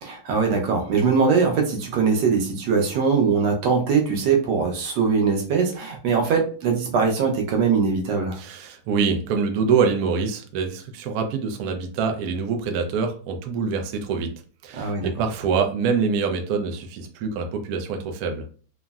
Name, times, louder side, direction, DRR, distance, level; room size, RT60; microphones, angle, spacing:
voice 1, 0.0-8.4 14.7-15.1, right 5 dB, 90° right, 1 dB, 1.4 m, -21 dB
voice 2, 8.4-14.3 14.6-18.5, right 5 dB, 70° right, 4 dB, 0.9 m, -25 dB
3.5 x 2.0 x 2.3 m, 0.41 s
omnidirectional pair, 1.8 m